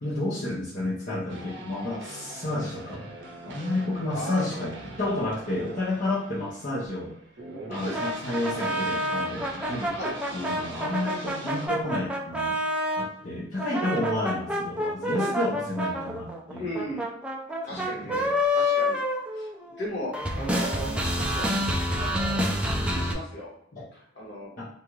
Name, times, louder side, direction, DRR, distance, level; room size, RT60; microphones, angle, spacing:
voice 1, 0.0-3.1 3.5-7.1 7.7-10.0 10.3-12.6 13.0-16.8 17.7-18.3 23.7-23.9 24.6-24.7, left 1 dB, 45° left, -9 dB, 0.8 m, -31 dB
sound 1, 1.3-11.7, right 2 dB, 65° right, 0.7 m, -42 dB
voice 2, 4.1-4.4 7.8-8.0 10.0-10.1 15.2-15.3 16.6-17.0 17.5-18.2 18.5-19.0 19.3-19.5 19.8-22.5 22.8-23.5 23.9-24.5, equal, 65° left, -5 dB, 1.3 m, -36 dB
sound 2, 7.9-13.1 13.6-19.9 20.1-23.1, left 1 dB, 5° right, 0.3 m, -28 dB
2.7 x 2.4 x 3.0 m, 0.70 s
head